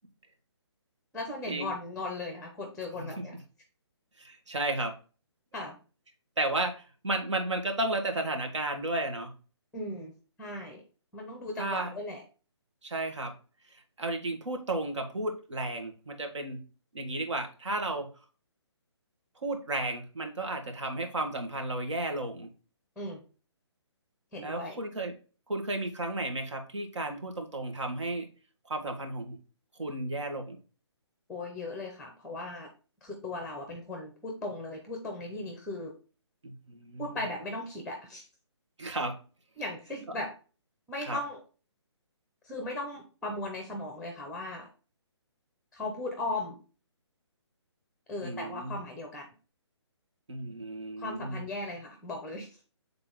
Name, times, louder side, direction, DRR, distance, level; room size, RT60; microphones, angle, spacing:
voice 1, 1.1-3.3 5.5-5.8 9.7-10.1 10.4-10.8 11.1-12.2 23.0-23.2 24.3-24.8 31.3-32.7 33.0-35.9 37.0-38.3 39.6-40.3 40.9-41.4 42.4-44.7 45.7-46.6 48.1-49.3 51.0-52.5, left 2 dB, ahead, 3 dB, 0.6 m, -37 dB
voice 2, 4.2-4.9 6.4-6.7 7.0-9.3 11.6-11.9 12.8-13.3 13.7-16.6 16.9-18.1 19.4-22.5 24.4-25.1 25.5-28.3 28.7-29.4 29.8-30.6 36.4-37.2 38.8-39.2 41.0-41.2 48.2-48.8 50.3-51.4, right 2 dB, 80° right, 5 dB, 1.7 m, -33 dB
6.8 x 3.8 x 3.8 m, 0.36 s
hypercardioid pair, 160°, 15 cm